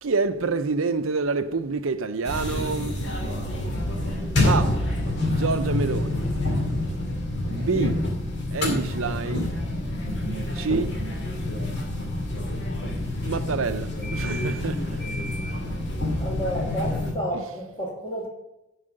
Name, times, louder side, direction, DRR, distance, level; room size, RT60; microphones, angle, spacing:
voice 1, 0.0-3.0 4.4-4.8 5.3-6.2 7.5-8.0 8.5-9.5 10.5-10.9 13.2-15.0 17.3-17.4, right 4 dB, 70° right, 0.6 m, -27 dB
sound 1, 2.2-17.1, left 1 dB, 55° left, 2.3 m, -27 dB
voice 2, 16.2-18.3, equal, 25° left, 2.3 m, -31 dB
11.5 x 4.8 x 6.4 m
head